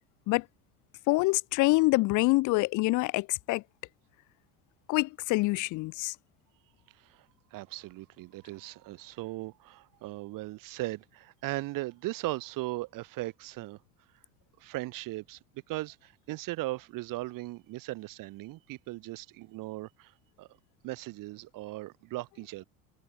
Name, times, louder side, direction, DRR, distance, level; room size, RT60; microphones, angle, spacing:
voice 1, 1.1-3.6 4.9-6.1, left 22 dB, 50° left, 0.5 m, -26 dB
voice 2, 6.9-13.8 14.6-15.4 15.7-20.6 20.8-22.6, right 19 dB, 60° right, 1.5 m, -38 dB
supercardioid pair, 90°, 38 cm